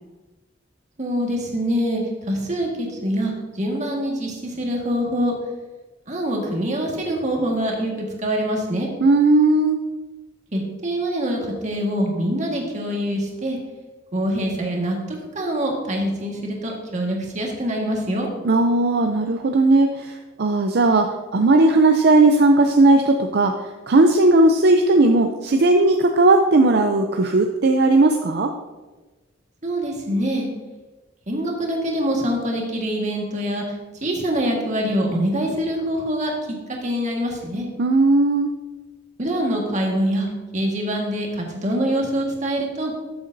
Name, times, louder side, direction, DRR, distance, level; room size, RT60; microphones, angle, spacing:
voice 1, 1.0-2.0 2.3-5.3 6.1-8.9 10.5-13.6 14.1-18.3 29.6-30.5 31.3-33.8 34.0-36.3 36.8-37.7 39.2-40.3 40.5-42.9, equal, 40° right, 0 dB, 1.6 m, -24 dB
voice 2, 9.0-9.8 18.4-23.5 23.9-28.5 37.8-38.5, right 2 dB, 60° right, 4 dB, 0.5 m, -17 dB
13.0 x 6.9 x 2.7 m, 1.2 s
head